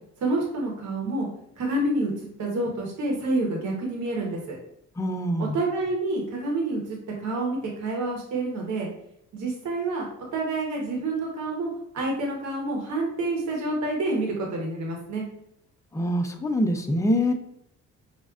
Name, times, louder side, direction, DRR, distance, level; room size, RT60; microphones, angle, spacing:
voice 1, 0.2-1.3 1.6-2.1 2.4-4.6 5.4-8.9 9.3-10.1 10.3-15.3, right 2 dB, 70° right, -1 dB, 1.1 m, -28 dB
voice 2, 5.0-5.6 15.9-17.3, equal, 10° left, 5 dB, 0.4 m, -24 dB
5.2 x 2.1 x 2.3 m, 0.77 s
cardioid pair, 90°, 30 cm